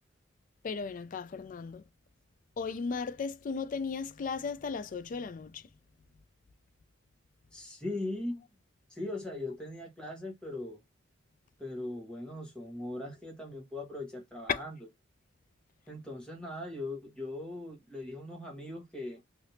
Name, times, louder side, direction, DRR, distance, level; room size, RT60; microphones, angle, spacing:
voice 1, 0.6-1.8 2.6-5.6 14.5-14.6, left 5 dB, 40° left, 0.3 m, -35 dB
voice 2, 7.5-8.4 8.9-10.8 11.6-14.8 15.9-19.2, left 2 dB, 5° left, 1.1 m, -39 dB
3.3 x 2.6 x 2.7 m
head